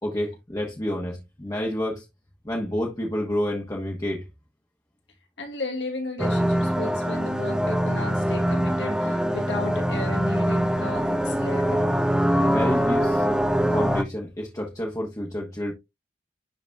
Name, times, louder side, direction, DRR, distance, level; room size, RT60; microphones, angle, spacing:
voice 1, 0.0-2.0 2.4-4.2 12.5-13.3 13.7-15.7, left 1 dB, 20° left, 1.2 m, -29 dB
voice 2, 5.4-11.8, left 2 dB, 70° left, 2.4 m, -34 dB
sound 1, 6.2-14.0, equal, 5° right, 0.4 m, -23 dB
10.5 x 4.0 x 2.3 m
head